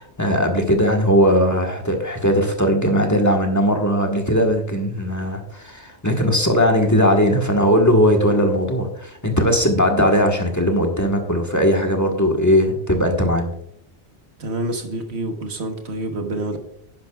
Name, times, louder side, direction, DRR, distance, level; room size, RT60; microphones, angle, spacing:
voice 1, 0.0-13.5, equal, 15° left, 2 dB, 1.4 m, -18 dB
voice 2, 14.4-16.6, right 1 dB, 75° right, 5 dB, 1.7 m, -27 dB
11.0 x 10.5 x 2.4 m, 0.70 s
omnidirectional pair, 1.1 m